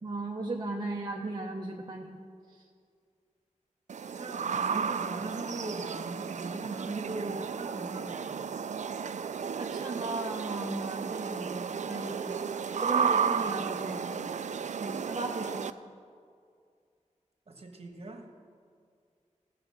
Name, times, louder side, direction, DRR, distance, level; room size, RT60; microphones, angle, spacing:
voice 1, 0.0-2.2 2.5-2.6 9.6-12.4 12.8-14.2 14.8-15.7, right 2 dB, 35° right, -1 dB, 0.8 m, -36 dB
sound 1, 3.9-15.7, right 6 dB, 70° right, 0.4 m, -33 dB
voice 2, 4.1-8.4 13.4-14.4 17.5-18.3, right 2 dB, 50° right, 3 dB, 1.4 m, -40 dB
16.0 x 5.9 x 6.7 m, 2.2 s
wide cardioid pair, 100°, 13 cm